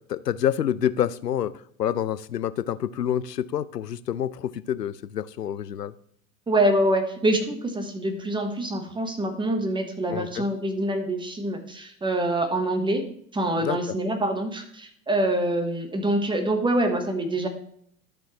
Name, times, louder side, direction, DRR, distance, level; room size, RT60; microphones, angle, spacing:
voice 1, 0.1-5.9 10.1-10.5 13.6-13.9, left 10 dB, 85° left, 17 dB, 0.5 m, -28 dB
voice 2, 6.5-13.1 13.3-17.5, right 1 dB, 10° right, 6 dB, 1.3 m, -25 dB
12.0 x 6.7 x 3.1 m, 0.65 s
figure-of-eight pair, 90°, 47 cm